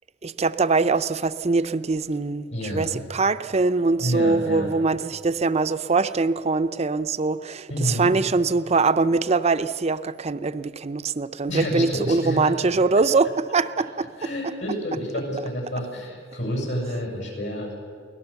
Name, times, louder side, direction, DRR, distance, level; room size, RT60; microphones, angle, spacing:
voice 1, 0.2-14.1, right 3 dB, 35° right, 12 dB, 0.6 m, -23 dB
voice 2, 2.5-3.0 4.0-4.7 7.7-8.1 11.5-12.4 13.5-13.6 14.2-17.7, equal, 75° left, 0 dB, 7.2 m, -29 dB
24.5 x 17.5 x 7.1 m, 2.2 s
head